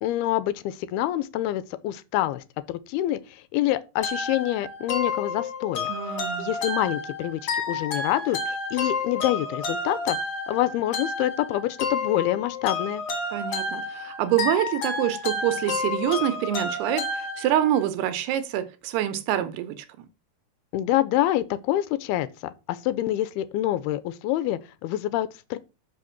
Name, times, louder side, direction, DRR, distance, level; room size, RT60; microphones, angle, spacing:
voice 1, 0.0-5.9 6.4-10.2 10.5-13.0 20.7-25.6, left 14 dB, 85° left, 2.4 m, -26 dB
sound 1, 4.0-17.8, left 3 dB, 45° left, 2.5 m, -30 dB
voice 2, 5.9-6.5 13.3-20.1, right 12 dB, 85° right, 2.8 m, -26 dB
6.4 x 6.0 x 5.8 m
omnidirectional pair, 4.6 m